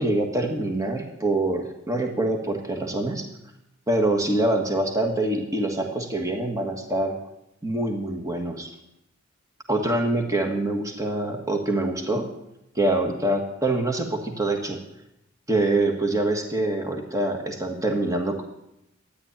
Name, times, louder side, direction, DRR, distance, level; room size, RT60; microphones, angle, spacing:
voice 1, 0.0-3.3 3.9-7.2 7.6-8.7 9.7-12.3 12.7-14.8 15.5-18.4, right 2 dB, 15° right, 3 dB, 1.5 m, -25 dB
13.0 x 10.0 x 8.7 m, 0.86 s
head